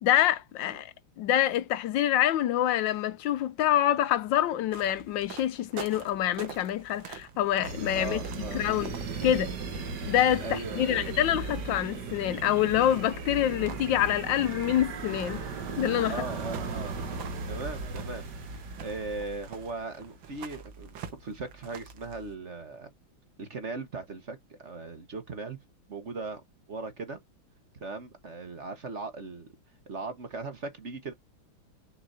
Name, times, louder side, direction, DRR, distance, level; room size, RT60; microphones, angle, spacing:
voice 1, 0.0-8.2 8.5-8.9 9.2-9.5 10.0-15.4 15.8-16.2, left 12 dB, 75° left, 1.2 m, -26 dB
sound 1, 4.7-9.3 12.1-22.3, right 6 dB, 75° right, 2.0 m, -47 dB
sound 2, 7.6-19.9, right 4 dB, 60° right, 2.0 m, -37 dB
voice 2, 7.9-8.7 10.4-11.2 16.1-22.9 23.4-25.6 25.9-26.4 26.7-27.2 27.8-29.5 29.9-31.1, right 3 dB, 40° right, 1.3 m, -39 dB
6.7 x 5.5 x 2.6 m
omnidirectional pair, 2.2 m